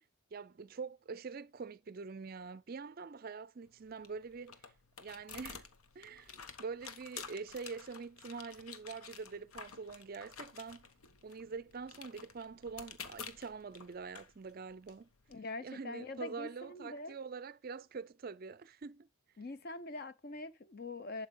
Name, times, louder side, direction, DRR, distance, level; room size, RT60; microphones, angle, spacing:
voice 1, 0.3-4.6 5.0-5.7 6.0-10.9 11.2-15.1 15.6-19.1, right 5 dB, 45° right, 0.4 m, -45 dB
sound 1, 3.6-15.3, left 6 dB, 80° left, 1.1 m, -52 dB
voice 2, 15.3-17.1 19.4-21.3, left 2 dB, 45° left, 0.7 m, -44 dB
11.5 x 5.2 x 3.8 m
head